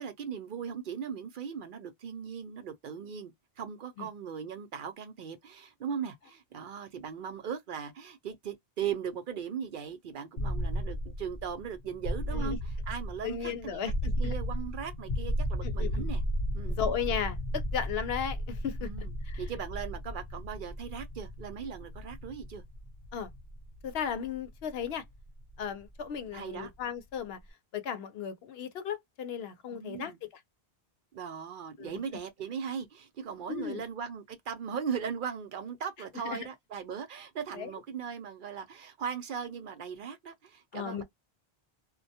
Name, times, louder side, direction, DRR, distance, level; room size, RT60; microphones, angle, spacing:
voice 1, 0.0-13.8 14.2-16.2 16.5-16.9 18.8-19.1 19.4-22.6 26.3-26.7 29.7-30.2 31.1-41.0, right 7 dB, 60° right, 0.7 m, -38 dB
sound 1, 10.4-26.2, equal, 50° left, 0.5 m, -35 dB
voice 2, 13.2-14.3 15.6-16.1 16.7-19.4 23.1-23.3 23.8-25.0 25.6-27.4 27.7-30.4 31.8-32.0 33.5-33.8 36.2-36.5 37.6-37.7 40.7-41.0, left 8 dB, 75° left, 0.8 m, -35 dB
2.2 x 2.2 x 2.6 m
omnidirectional pair, 1.0 m